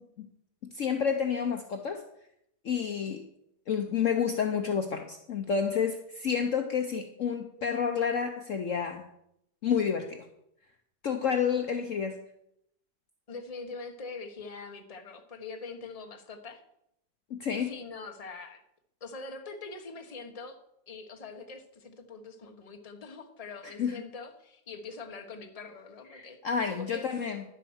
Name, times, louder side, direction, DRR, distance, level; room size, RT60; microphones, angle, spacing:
voice 1, 0.7-2.0 2.6-3.2 3.7-9.0 9.6-10.2 11.0-12.2 17.3-17.7 23.6-24.0 26.1-27.4, left 7 dB, 55° left, 5 dB, 1.1 m, -29 dB
voice 2, 13.3-16.6 17.5-18.6 19.0-20.6 20.9-26.4 26.7-27.2, left 4 dB, 25° left, 6 dB, 1.1 m, -43 dB
11.0 x 7.8 x 6.3 m, 0.76 s
omnidirectional pair, 1.8 m